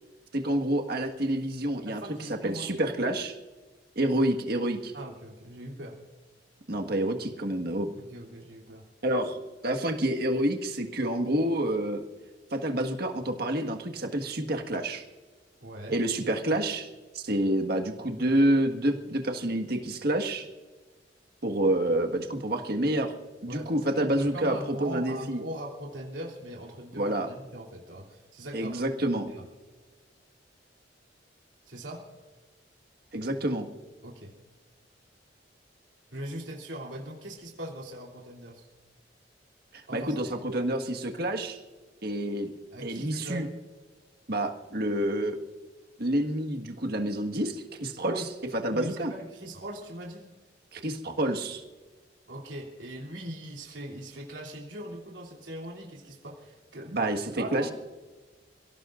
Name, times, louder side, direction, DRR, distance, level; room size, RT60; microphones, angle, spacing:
voice 1, 0.3-3.3 4.0-4.9 6.7-7.9 9.0-12.0 12.5-15.0 15.9-16.9 17.1-20.5 21.4-23.1 23.4-25.4 26.9-27.3 28.5-29.3 33.1-33.7 39.7-41.6 42.0-42.5 42.8-43.5 44.3-45.4 46.0-49.1 50.7-51.6 56.9-57.7, right 1 dB, 60° right, 4 dB, 1.6 m, -28 dB
voice 2, 1.8-2.9 4.9-6.0 8.0-8.9 15.6-16.0 23.5-28.9 29.1-29.4 31.7-32.1 34.0-34.3 36.1-38.7 39.9-40.4 42.7-43.5 48.0-48.3 48.7-50.3 52.3-57.0 57.4-57.7, right 1 dB, 85° right, -2 dB, 3.2 m, -40 dB
29.0 x 17.0 x 2.6 m, 1.3 s
head